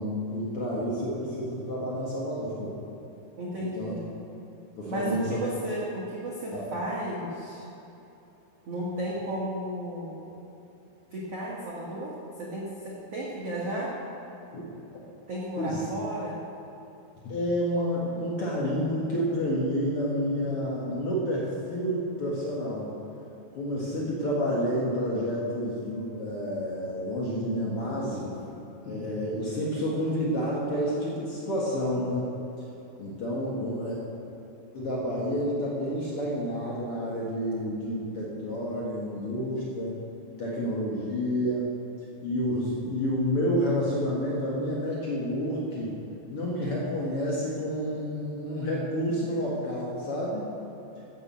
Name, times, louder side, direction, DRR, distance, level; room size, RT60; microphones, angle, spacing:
voice 1, 0.0-2.7 3.6-4.0 4.8-5.4 6.5-6.7 14.5-14.6 15.6-15.8 17.2-22.9 23.5-28.3 28.8-32.3 33.0-34.0 34.7-40.0 40.4-41.7 42.2-45.9 46.3-50.5, equal, 85° left, -5 dB, 1.2 m, -29 dB
voice 2, 3.4-4.0 4.9-7.6 8.7-10.2 11.1-12.1 12.4-13.9 15.3-16.4, right 1 dB, 90° right, -5 dB, 1.3 m, -33 dB
14.0 x 7.4 x 7.5 m, 3.0 s
omnidirectional pair, 5.6 m